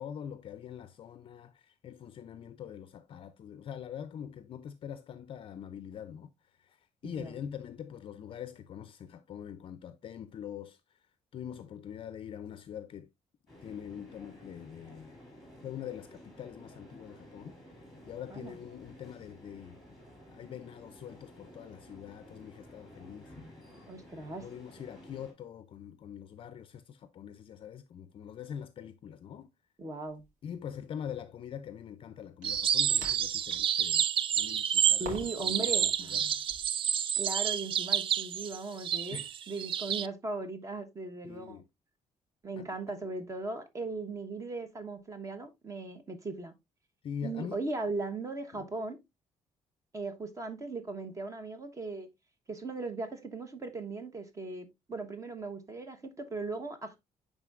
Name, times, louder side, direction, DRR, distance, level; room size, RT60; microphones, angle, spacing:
voice 1, 0.0-6.3 6.6-11.0 11.3-13.1 13.6-15.2 15.6-19.8 20.3-23.3 24.4-29.5 30.4-34.0 34.3-36.3 39.1-39.5 41.2-41.7 42.6-42.7 47.0-47.6 48.5-48.6, left 8 dB, 45° left, 0.4 m, -44 dB
voice 2, 7.0-7.3 18.3-18.5 23.9-24.5 29.8-30.2 35.0-36.4 37.2-39.2 39.5-41.6 42.4-46.5 47.2-49.0 49.9-52.1 52.5-57.0, right 3 dB, 25° right, 1.0 m, -38 dB
sound 1, 13.5-25.3, left 1 dB, ahead, 2.8 m, -53 dB
sound 2, 30.1-30.3 32.4-33.8 35.0-35.5 35.8-36.7, right 2 dB, 80° right, 2.3 m, -46 dB
sound 3, 32.4-40.1, right 9 dB, 45° right, 0.4 m, -29 dB
10.5 x 3.7 x 2.4 m
cardioid pair, 140°, 12 cm